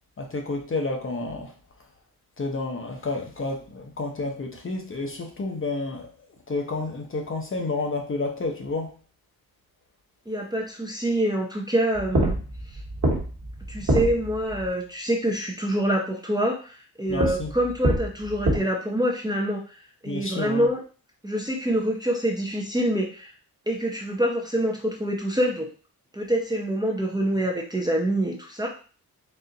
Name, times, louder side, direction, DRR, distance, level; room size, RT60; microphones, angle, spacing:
voice 1, 0.2-1.5 2.4-6.1 6.5-8.9 17.1-17.5 20.1-20.7, left 3 dB, 35° left, 2 dB, 0.7 m, -30 dB
voice 2, 10.3-12.4 13.7-20.8 21.2-23.3 23.7-25.7 26.1-28.7, right 1 dB, 10° right, -1 dB, 0.6 m, -26 dB
sound 1, 11.9-14.7 17.1-18.6, right 1 dB, 45° right, 1.4 m, -26 dB
4.2 x 2.4 x 3.8 m, 0.38 s
wide cardioid pair, 145°, 37 cm